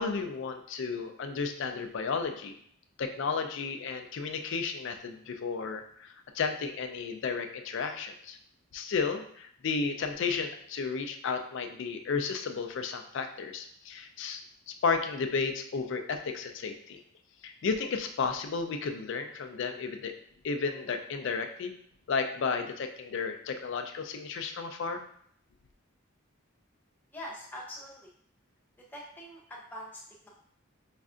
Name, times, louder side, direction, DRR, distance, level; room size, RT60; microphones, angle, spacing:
voice 1, 0.0-2.6 3.0-8.4 8.7-17.0 17.4-20.2 20.4-21.7 22.1-25.0, left 5 dB, 60° left, 6 dB, 0.4 m, -33 dB
voice 2, 27.1-28.1 28.9-30.3, equal, 10° left, -4 dB, 0.7 m, -44 dB
5.2 x 2.4 x 2.4 m, 0.64 s
head